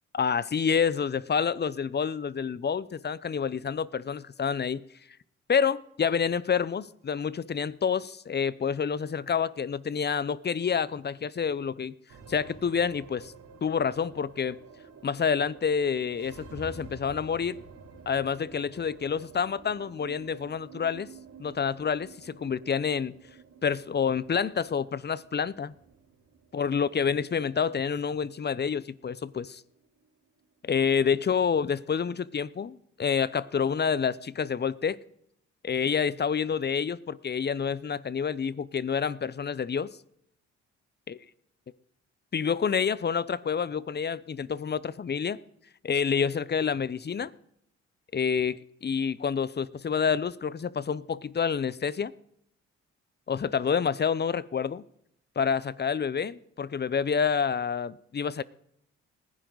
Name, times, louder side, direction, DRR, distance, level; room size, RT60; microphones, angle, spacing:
voice 1, 0.1-4.8 5.5-11.9 12.3-13.3 13.6-14.6 15.0-17.6 18.1-21.1 21.4-23.1 23.6-25.7 26.5-29.6 30.6-35.0 35.6-39.9 41.1-41.2 42.3-45.4 45.8-47.3 48.1-52.1 53.3-54.8 55.4-58.4, left 6 dB, 35° left, 0.8 m, -28 dB
sound 1, 12.1-30.6, right 5 dB, 75° right, 3.5 m, -50 dB
20.0 x 15.5 x 4.0 m
supercardioid pair, 60°, 30 cm